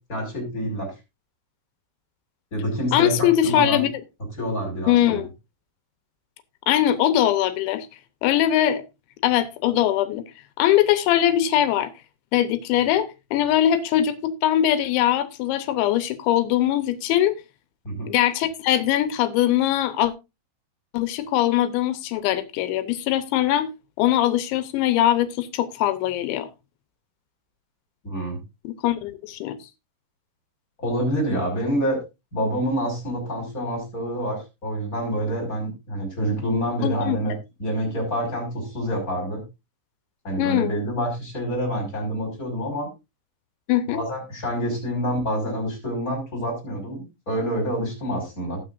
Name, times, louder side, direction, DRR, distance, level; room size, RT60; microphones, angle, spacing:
voice 1, 0.1-0.9 2.5-3.8 4.4-5.2 17.8-18.1 28.0-28.4 30.8-32.0 32.3-37.3 37.6-39.4 40.2-42.9 43.9-48.6, equal, 20° left, -1 dB, 5.2 m, -27 dB
voice 2, 2.9-3.9 4.9-5.3 6.7-7.9 8.2-8.8 9.2-10.2 10.6-11.9 12.3-17.4 18.1-20.1 20.9-23.7 24.0-26.5 28.6-29.6 36.8-37.2 40.4-40.8 43.7-44.0, left 12 dB, 85° left, 12 dB, 3.2 m, -21 dB
19.0 x 6.5 x 2.5 m, 0.24 s
omnidirectional pair, 5.1 m